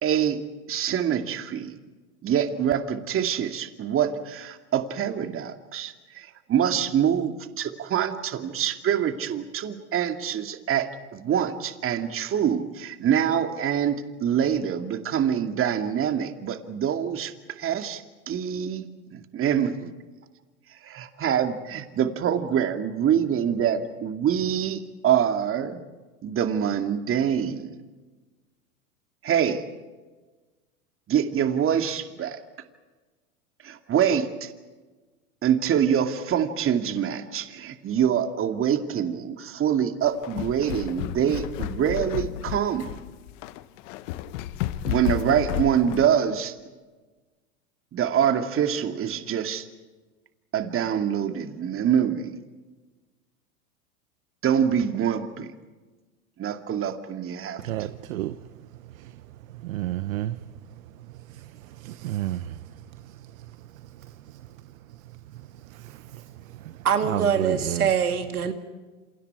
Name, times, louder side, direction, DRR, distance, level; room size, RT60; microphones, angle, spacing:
voice 1, 0.0-0.4 0.7-1.7 2.2-19.9 20.8-25.8 26.2-27.8 29.2-29.6 31.1-32.4 33.6-34.5 35.4-42.9 44.9-46.5 47.9-49.7 50.5-52.3 54.4-55.5 56.4-57.6, right 9 dB, 30° right, 2.4 m, -25 dB
sound 1, 40.0-46.1, left 13 dB, 55° left, 1.4 m, -32 dB
voice 2, 57.6-58.3 59.6-60.4 61.8-62.6 67.1-67.9, right 14 dB, 65° right, 1.2 m, -30 dB
voice 3, 66.8-68.5, right 7 dB, 85° right, 2.6 m, -23 dB
28.5 x 28.0 x 4.8 m
hypercardioid pair, 100°, 43 cm